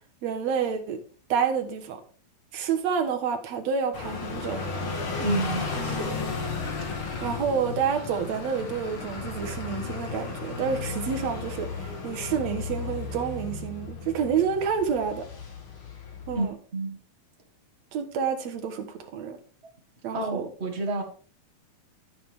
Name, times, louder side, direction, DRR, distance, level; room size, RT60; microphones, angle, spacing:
voice 1, 0.2-1.0 1.3-2.0 2.5-4.6 5.8-6.4 7.2-15.3 16.3-16.6 17.9-19.4 20.0-20.5, right 6 dB, 60° right, 2.2 m, -29 dB
sound 1, 3.9-16.5, left 4 dB, 45° left, 2.1 m, -34 dB
voice 2, 5.2-6.1 16.3-17.0 20.1-21.0, right 2 dB, 35° right, 1.0 m, -30 dB
13.5 x 6.7 x 3.5 m
omnidirectional pair, 3.9 m